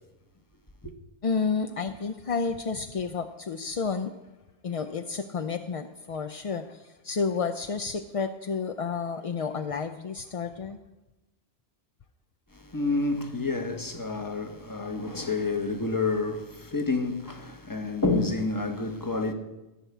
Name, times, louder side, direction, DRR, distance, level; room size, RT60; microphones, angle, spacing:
voice 1, 1.2-4.1 4.6-10.8, left 5 dB, 50° left, 0.4 m, -31 dB
voice 2, 12.5-19.3, left 3 dB, 20° left, 1.1 m, -29 dB
14.0 x 5.9 x 8.2 m
omnidirectional pair, 1.1 m